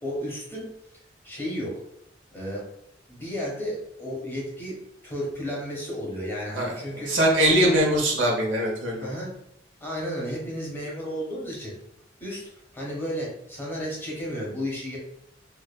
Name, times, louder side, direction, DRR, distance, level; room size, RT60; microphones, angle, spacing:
voice 1, 0.0-0.7 1.2-1.8 2.3-2.7 3.1-4.8 5.0-7.1 7.6-7.8 9.0-9.3 9.8-11.7 12.2-15.0, equal, 10° left, -4 dB, 0.8 m, -33 dB
voice 2, 7.0-9.1, right 1 dB, 80° right, -2 dB, 0.8 m, -22 dB
2.6 x 2.3 x 2.2 m, 0.74 s
head